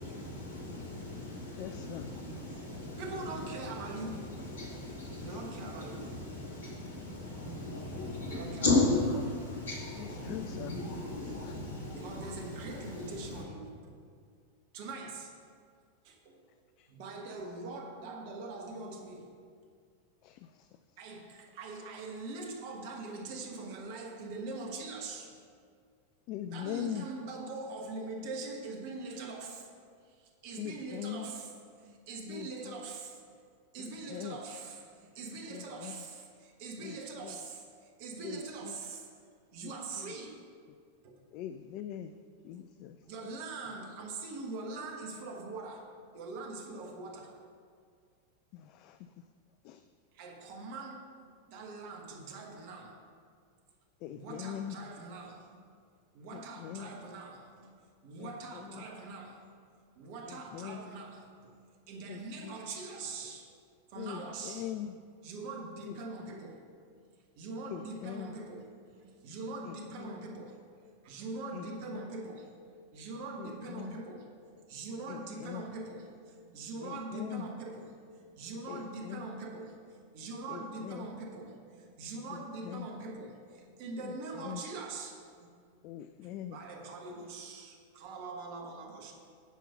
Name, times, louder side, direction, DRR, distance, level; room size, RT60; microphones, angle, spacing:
voice 1, 0.0-13.4, left 2 dB, 65° left, -4 dB, 2.6 m, -36 dB
voice 2, 1.6-2.1 10.3-10.7 20.2-20.3 26.3-27.1 30.6-31.2 32.3-32.5 34.1-34.4 35.5-35.9 36.8-36.9 37.2-37.3 38.2-38.4 41.3-42.1 42.4-42.9 48.8-48.9 49.7-49.8 54.0-54.7 56.3-56.9 58.2-58.3 60.5-60.8 62.1-62.5 64.0-64.2 64.5-64.9 67.7-68.3 70.1-70.2 73.8-73.9 75.4-75.6 76.8-76.9 77.2-77.4 78.7-78.8 79.1-79.2 80.9-81.0 84.5-84.6 85.8-86.6, left 11 dB, 40° left, 10 dB, 0.3 m, -40 dB
voice 3, 3.0-4.2 5.2-6.4 8.3-8.7 11.9-13.9 14.7-15.3 16.0-16.4 16.9-19.3 21.0-25.3 26.5-29.7 30.0-33.2 33.7-39.1 39.5-40.4 41.0-41.2 42.5-45.8 46.1-47.3 50.1-51.0 51.5-52.9 54.1-55.6 56.1-57.7 58.0-59.4 59.9-63.5 63.9-66.6 67.4-70.6 71.0-72.5 72.9-74.3 74.7-85.5 86.5-89.1, right 3 dB, 45° right, 2 dB, 1.3 m, -43 dB
9.3 x 5.3 x 5.7 m, 2.1 s
figure-of-eight pair, 90°, 0 cm